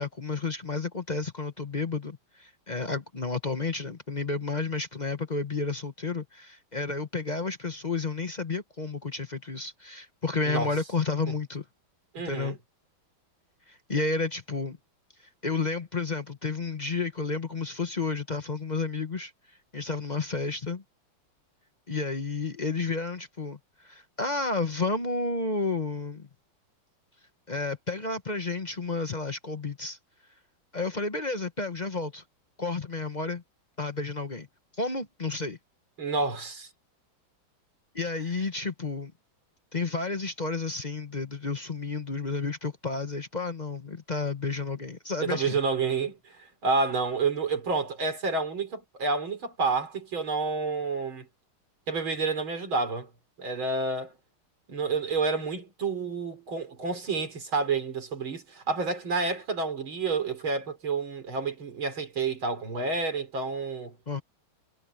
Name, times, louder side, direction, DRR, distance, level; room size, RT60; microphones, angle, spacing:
voice 1, 0.0-11.6 12.2-12.6 13.7-14.8 15.4-19.3 19.7-20.8 21.9-26.3 27.5-30.0 30.7-32.2 32.6-33.4 33.8-34.5 34.8-35.6 37.9-39.1 39.7-45.6 64.1-64.2, left 3 dB, 30° left, 0.9 m, -31 dB
voice 2, 12.1-12.6 36.0-36.7 45.2-51.3 51.9-53.1 53.4-54.1 54.7-64.0, right 4 dB, 75° right, 4.5 m, -29 dB
omnidirectional pair, 2.2 m